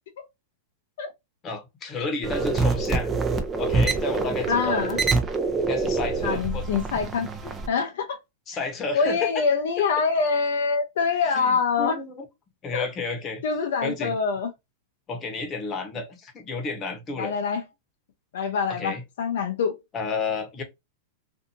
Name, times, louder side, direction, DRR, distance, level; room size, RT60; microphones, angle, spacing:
voice 1, 1.4-3.1 3.6-4.9 5.6-6.7 7.4-7.5 8.5-9.3 11.2-12.2 12.6-13.4 13.8-14.1 15.1-17.3 18.7-19.0 19.9-20.6, left 3 dB, 30° left, 1.0 m, -31 dB
sound 1, 2.2-7.7, right 4 dB, 20° right, 0.6 m, -25 dB
voice 2, 4.5-5.0 6.2-7.3 7.7-8.2 8.9-12.0 12.7-12.9 13.4-14.5 17.2-17.6 18.3-19.8, left 5 dB, 75° left, 0.5 m, -25 dB
2.6 x 2.5 x 2.5 m
hypercardioid pair, 120°, 0 cm